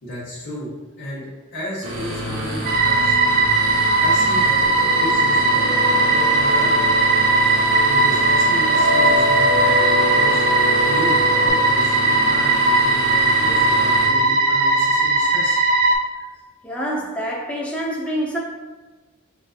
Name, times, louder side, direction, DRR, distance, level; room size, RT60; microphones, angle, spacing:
voice 1, 0.0-0.7 1.0-3.1 4.0-4.6 5.0-5.7 6.1-6.9 7.9-9.8 10.1-10.4 10.9-15.6, equal, 55° left, -8 dB, 1.0 m, -33 dB
sound 1, 1.8-14.1, equal, 75° right, 0.9 m, -29 dB
sound 2, 2.7-16.0, right 3 dB, 40° right, 0.4 m, -18 dB
sound 3, 4.6-11.5, left 3 dB, 80° left, 1.0 m, -27 dB
voice 2, 16.6-18.4, equal, 5° left, -4 dB, 0.6 m, -26 dB
5.4 x 2.5 x 2.4 m, 1.2 s
head